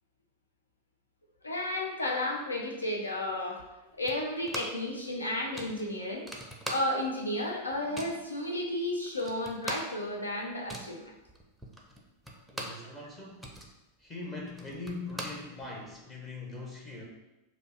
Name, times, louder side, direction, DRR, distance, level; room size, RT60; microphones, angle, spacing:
voice 1, 1.4-3.6 3.9-6.3 6.7-11.1, left 1 dB, 80° left, 0 dB, 0.9 m, -33 dB
sound 1, 4.1-4.9 5.2-5.3 5.5-7.2 7.5-8.2 8.8-8.9 9.1-12.9 13.2-16.0, right 1 dB, ahead, 0.7 m, -42 dB
voice 2, 12.5-13.5 14.0-17.0, left 3 dB, 20° left, -2 dB, 1.0 m, -41 dB
5.2 x 2.1 x 4.7 m, 1.0 s
figure-of-eight pair, 90°, 0 cm